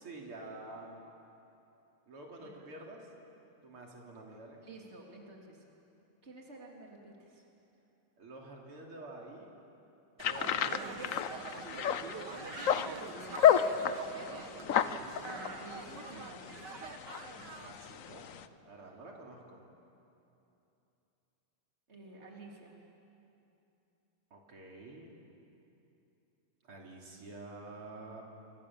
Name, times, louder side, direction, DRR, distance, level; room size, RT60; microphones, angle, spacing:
voice 1, 0.0-1.0 2.1-3.1 3.6-4.6 8.2-9.5 10.3-11.1 17.3-18.3 18.6-19.6 24.3-25.1 26.6-28.2, right 2 dB, 75° right, -1 dB, 3.9 m, -48 dB
voice 2, 2.4-2.7 4.6-5.6 6.2-7.5 10.7-11.1 14.0-16.6 21.9-22.8, right 2 dB, 30° right, -1 dB, 3.4 m, -52 dB
sound 1, 10.2-18.5, left 9 dB, 85° left, 0.7 m, -32 dB
sound 2, 10.2-17.7, right 5 dB, 55° right, 1.9 m, -44 dB
29.0 x 25.5 x 7.4 m, 2.8 s
omnidirectional pair, 2.4 m